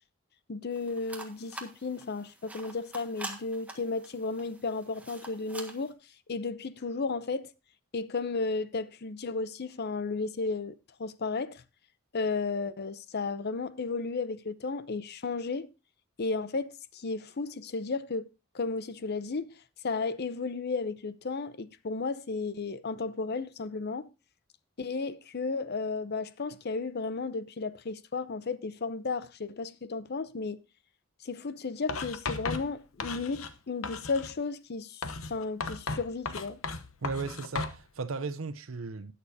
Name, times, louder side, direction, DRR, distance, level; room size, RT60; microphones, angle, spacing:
voice 1, 0.5-6.0 6.3-7.5 7.9-11.6 12.1-15.7 16.2-18.3 18.5-19.5 19.8-24.1 24.8-30.6 31.2-36.6, left 4 dB, 55° left, 0.7 m, -34 dB
sound 1, 0.7-5.9, right 2 dB, 5° right, 1.5 m, -46 dB
Writing, 31.9-33.6 33.8-34.4 35.0-37.8, left 4 dB, 90° left, 1.0 m, -36 dB
voice 2, 37.0-39.1, right 4 dB, 70° right, 0.7 m, -36 dB
19.5 x 6.8 x 2.7 m
head